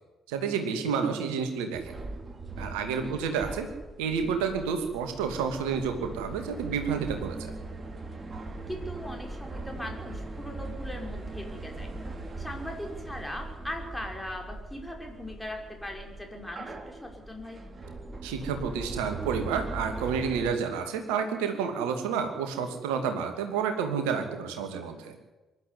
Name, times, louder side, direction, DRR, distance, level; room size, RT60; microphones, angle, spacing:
voice 1, 0.3-1.9 2.6-3.7 4.0-7.5 18.2-25.2, right 6 dB, 70° right, 6 dB, 2.6 m, -30 dB
sound 1, 1.7-20.5, right 2 dB, 30° right, 3.0 m, -40 dB
voice 2, 3.0-3.4 8.7-11.9 12.4-17.6, left 1 dB, 10° left, 2 dB, 5.5 m, -39 dB
23.5 x 12.0 x 9.8 m, 1.1 s
figure-of-eight pair, 45°, 0 cm